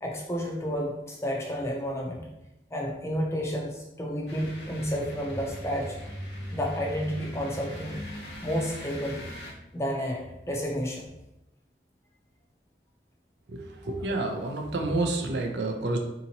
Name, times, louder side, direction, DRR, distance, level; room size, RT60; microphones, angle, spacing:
voice 1, 0.0-2.3 2.7-6.0 6.5-8.0 8.4-9.2 9.7-11.0, equal, 15° left, -1 dB, 0.5 m, -31 dB
sound 1, 4.3-9.5, equal, 80° left, 0.9 m, -39 dB
voice 2, 13.5-16.0, right 2 dB, 80° right, 3 dB, 0.5 m, -29 dB
3.8 x 2.8 x 2.7 m, 0.92 s
head